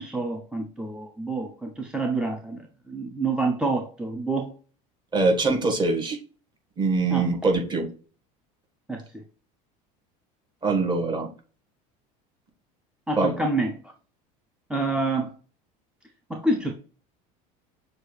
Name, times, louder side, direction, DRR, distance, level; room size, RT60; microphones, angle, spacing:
voice 1, 0.0-4.5 7.1-7.2 8.9-9.2 13.1-13.8 14.7-15.3 16.3-16.7, right 2 dB, 5° right, 0.5 m, -27 dB
voice 2, 5.1-6.2 6.8-7.9 10.6-11.3 13.2-13.3, right 3 dB, 25° right, 1.4 m, -23 dB
6.6 x 2.4 x 3.2 m
supercardioid pair, 125°, 18 cm